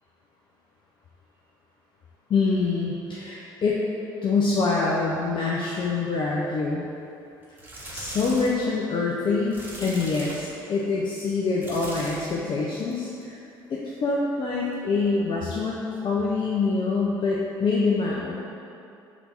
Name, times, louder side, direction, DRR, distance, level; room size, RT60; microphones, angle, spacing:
voice 1, 2.3-3.8 4.2-6.9 7.9-13.4 13.7-18.4, left 4 dB, 45° left, -4 dB, 0.5 m, -25 dB
sound 1, 7.4-8.6 9.5-10.6 11.6-12.4 12.8-13.1 14.7-14.8, right 1 dB, 15° right, 1.1 m, -39 dB
4.4 x 2.7 x 4.0 m, 2.7 s
hypercardioid pair, 60°, 11 cm